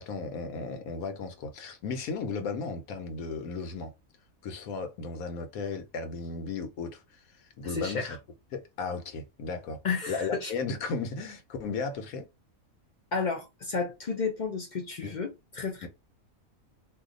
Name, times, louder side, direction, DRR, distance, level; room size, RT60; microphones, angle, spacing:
voice 1, 0.0-3.9 4.4-7.2 7.6-8.2 8.5-9.8 10.1-12.3 15.0-15.1 15.8-15.9, left 4 dB, 85° left, 1.2 m, -35 dB
voice 2, 7.7-8.2 9.8-10.5 13.1-15.3 15.6-15.9, left 5 dB, 60° left, 0.4 m, -32 dB
2.7 x 2.3 x 3.7 m
omnidirectional pair, 1.5 m